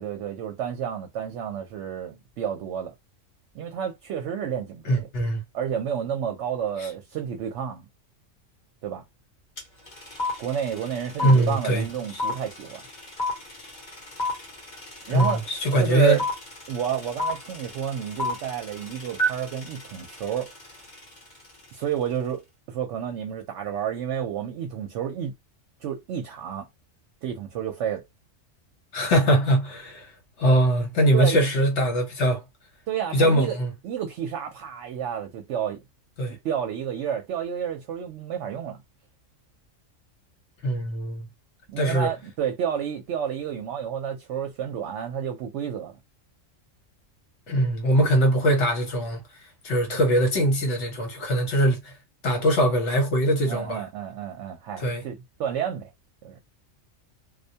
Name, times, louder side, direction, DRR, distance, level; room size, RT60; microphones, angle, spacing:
voice 1, 0.0-2.9 3.5-5.1 5.5-7.9 8.8-9.0 10.4-12.8 15.1-15.4 15.8-16.3 16.7-20.5 21.7-25.3 25.8-26.7 27.2-28.0 31.1-31.4 32.9-33.6 33.8-35.8 36.3-38.8 41.7-46.0 53.5-55.9 56.2-56.4, right 9 dB, 70° right, 0.9 m, -30 dB
voice 2, 4.8-5.4 11.2-11.9 15.1-16.2 28.9-30.1 30.4-32.4 33.1-33.7 36.2-36.4 40.6-41.3 41.8-42.1 47.5-49.2 49.6-51.9 52.2-53.8 54.8-55.0, right 1 dB, 65° left, 1.2 m, -22 dB
sound 1, 9.6-9.7 9.9-21.0, left 1 dB, 40° left, 1.0 m, -30 dB
2.4 x 2.1 x 2.7 m
omnidirectional pair, 1.3 m